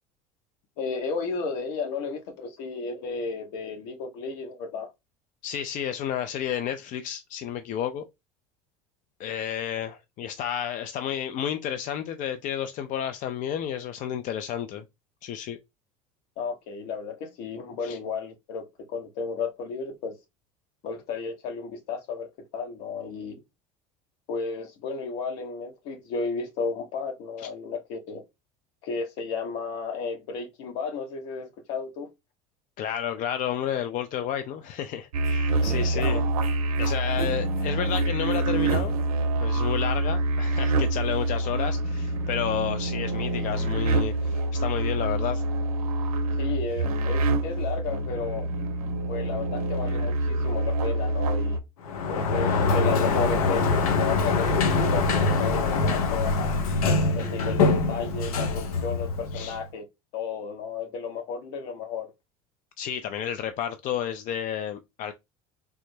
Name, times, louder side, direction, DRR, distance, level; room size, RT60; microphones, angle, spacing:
voice 1, 0.8-4.9 16.4-20.1 20.8-23.4 24.3-28.2 28.8-32.1 35.7-36.2 46.4-48.5 49.1-51.6 52.1-56.6 57.1-59.8 60.1-62.1, left 5 dB, 65° left, 1.0 m, -33 dB
voice 2, 5.4-8.1 9.2-14.8 15.2-15.6 17.8-18.0 27.4-27.5 32.8-36.2 36.8-38.9 39.4-45.4 59.3-59.6 62.8-65.1, left 9 dB, 45° left, 0.4 m, -31 dB
sound 1, 35.1-51.6, right 2 dB, 85° right, 0.5 m, -26 dB
Sliding door, 51.8-59.6, left 3 dB, 85° left, 0.6 m, -24 dB
3.3 x 2.0 x 3.2 m
hypercardioid pair, 80°, 18 cm